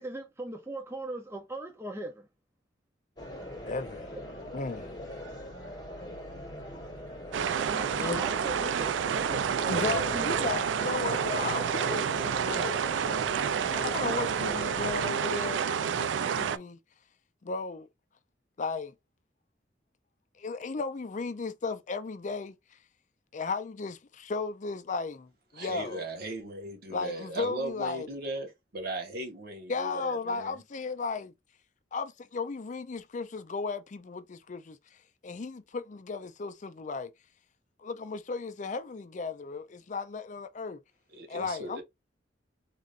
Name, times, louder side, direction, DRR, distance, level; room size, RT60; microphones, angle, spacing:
voice 1, 0.0-2.3 7.7-10.2 11.3-12.1, right 2 dB, 15° right, 0.5 m, -40 dB
sound 1, 3.2-15.1, left 1 dB, 25° left, 1.7 m, -42 dB
voice 2, 3.7-4.1 4.5-4.9 6.7-6.9 8.0-8.2 9.7-12.8 13.7-16.8 17.4-17.9 18.6-18.9 20.4-22.8 23.3-26.0 26.9-28.1 29.7-31.3 31.9-37.1 37.8-40.8 41.3-41.8, left 4 dB, 40° left, 0.4 m, -35 dB
sound 2, 7.3-16.6, right 7 dB, 85° right, 0.4 m, -29 dB
voice 3, 25.5-30.6 41.1-41.8, right 2 dB, 55° right, 1.3 m, -38 dB
3.7 x 3.3 x 2.4 m
head